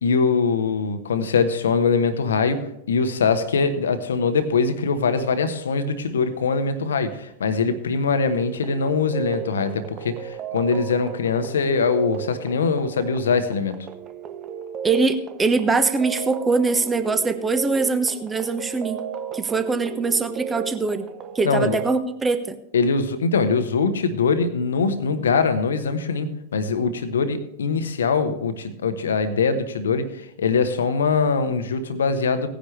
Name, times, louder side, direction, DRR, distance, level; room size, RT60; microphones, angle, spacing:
voice 1, 0.0-13.8 21.4-21.8 22.7-30.1 30.4-32.5, left 5 dB, 65° left, 11 dB, 1.1 m, -22 dB
sound 1, 8.6-22.0, right 8 dB, 30° right, 0.9 m, -35 dB
voice 2, 14.8-19.0 19.3-21.1 21.3-22.6, right 4 dB, 15° right, 9 dB, 1.2 m, -22 dB
17.5 x 10.0 x 3.2 m, 0.81 s
figure-of-eight pair, 90°, 0 cm